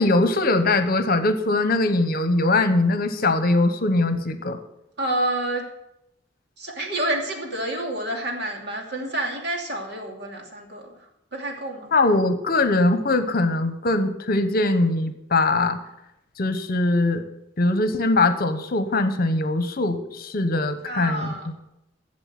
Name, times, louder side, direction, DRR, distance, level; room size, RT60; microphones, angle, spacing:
voice 1, 0.0-4.6 11.9-15.8 16.4-17.2 17.6-21.5, left 2 dB, 55° left, 10 dB, 1.1 m, -21 dB
voice 2, 5.0-5.6 6.6-11.0 11.3-11.9 20.9-21.5, right 1 dB, 65° right, 1 dB, 2.7 m, -28 dB
11.5 x 7.7 x 7.7 m, 0.84 s
head